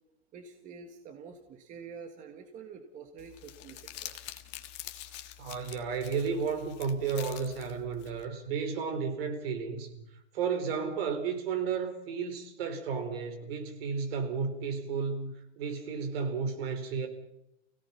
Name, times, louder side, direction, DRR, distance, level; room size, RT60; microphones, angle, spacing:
voice 1, 0.3-4.3, right 6 dB, 20° right, 5 dB, 1.8 m, -47 dB
Crumpling crinkling, 3.2-8.2, left 13 dB, 30° left, 1.6 m, -46 dB
voice 2, 5.4-10.0 10.3-17.1, right 5 dB, 55° right, 6 dB, 4.5 m, -33 dB
29.5 x 17.0 x 5.8 m, 0.84 s
hypercardioid pair, 150°, 35 cm